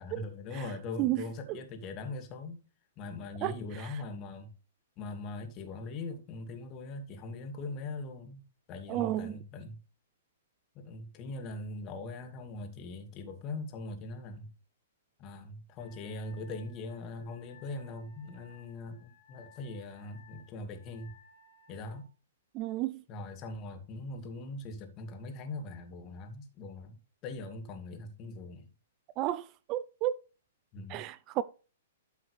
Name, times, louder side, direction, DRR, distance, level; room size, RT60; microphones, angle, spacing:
voice 1, 0.0-2.6 3.0-4.5 5.0-8.4 8.7-9.8 10.7-14.5 15.2-21.2 21.7-22.1 23.1-28.7 30.7-31.0, left 2 dB, 35° left, 2.3 m, -41 dB
voice 2, 8.9-9.4 22.5-23.0 29.2-30.2 30.9-31.4, right 14 dB, 35° right, 0.5 m, -32 dB
Wind instrument woodwind instrument, 15.8-22.1, left 3 dB, 55° left, 2.0 m, -60 dB
12.5 x 5.6 x 3.3 m
hypercardioid pair, 120°, 0 cm